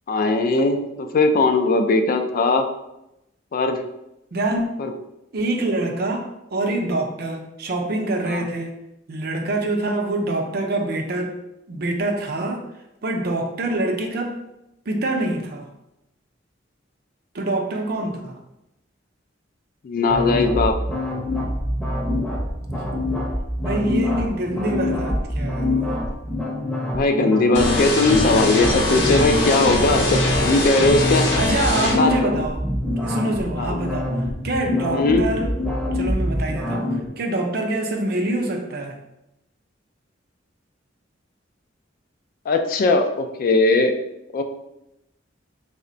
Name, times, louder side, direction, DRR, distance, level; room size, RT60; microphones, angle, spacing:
voice 1, 0.1-2.7 3.5-3.8 4.8-4.9 8.3-8.4 19.8-20.8 26.9-31.3 31.9-32.3 33.6-33.8 34.9-35.3 42.5-43.9 44.3-44.4, left 3 dB, 50° left, 6 dB, 0.3 m, -19 dB
voice 2, 4.3-4.6 5.3-8.8 9.1-11.4 11.7-12.7 13.0-14.4 14.9-15.7 17.3-18.4 22.8-23.0 23.6-26.0 31.4-32.6 33.0-35.5 35.9-39.0, right 2 dB, 55° right, 3 dB, 0.5 m, -25 dB
sound 1, 20.1-37.1, left 1 dB, 10° left, 0.6 m, -25 dB
sound 2, 27.5-31.9, left 1 dB, 70° left, 0.8 m, -22 dB
3.3 x 2.1 x 3.8 m, 0.88 s
head